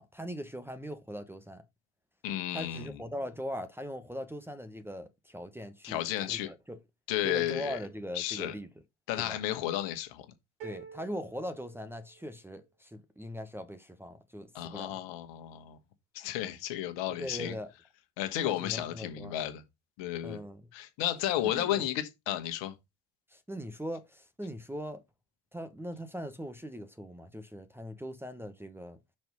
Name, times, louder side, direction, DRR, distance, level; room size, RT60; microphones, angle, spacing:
voice 1, 0.0-1.6 2.5-6.0 6.3-6.8 7.2-8.7 9.2-9.4 10.6-15.0 17.2-17.7 18.4-19.4 20.2-20.6 21.4-21.9 23.3-25.0 25.5-29.0, equal, 5° right, 1.1 m, -40 dB
voice 2, 2.2-2.9 5.8-6.5 7.1-7.8 8.1-8.5 9.1-10.3 14.6-15.8 16.1-17.5 18.2-19.6 20.0-20.4 20.7-22.7, left 13 dB, 60° left, 1.7 m, -33 dB
sound 1, 10.6-12.6, right 6 dB, 85° right, 3.5 m, -49 dB
6.1 x 4.4 x 5.3 m
hypercardioid pair, 70°, 49 cm